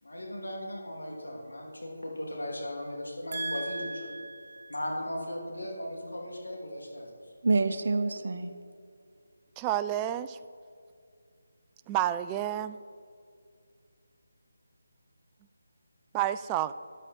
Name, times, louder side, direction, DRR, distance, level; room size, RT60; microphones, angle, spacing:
voice 1, 0.0-4.2 4.7-7.1, left 1 dB, 90° left, 0 dB, 2.8 m, -37 dB
voice 2, 3.3-4.7 7.4-8.5, right 3 dB, 55° right, 9 dB, 0.9 m, -30 dB
voice 3, 9.6-10.4 11.9-12.8 16.1-16.7, right 12 dB, 15° right, 12 dB, 0.3 m, -29 dB
13.5 x 10.5 x 4.3 m, 2.2 s
figure-of-eight pair, 160°, 0 cm